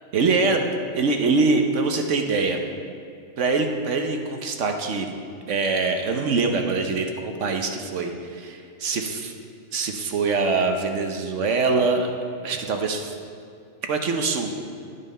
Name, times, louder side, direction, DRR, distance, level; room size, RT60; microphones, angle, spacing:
voice 1, 0.1-0.6 1.0-2.6 3.4-5.1 5.5-9.3 9.7-12.1 12.4-13.1 13.9-14.5, right 3 dB, 80° right, 4 dB, 1.2 m, -23 dB
9.5 x 8.9 x 5.5 m, 2.5 s
omnidirectional pair, 1.2 m